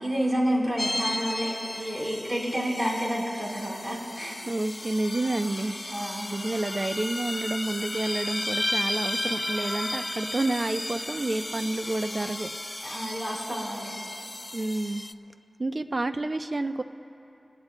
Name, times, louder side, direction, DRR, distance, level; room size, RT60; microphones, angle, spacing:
voice 1, 0.0-4.4 5.9-6.3 12.8-13.9, equal, 30° right, -4 dB, 4.4 m, -29 dB
sound 1, 0.8-15.1, left 1 dB, 25° left, 0.4 m, -34 dB
voice 2, 4.5-5.7 6.3-12.5 14.5-15.0 15.6-16.8, right 2 dB, 45° right, 8 dB, 0.7 m, -29 dB
28.5 x 19.5 x 2.3 m, 2.8 s
wide cardioid pair, 70°, 0 cm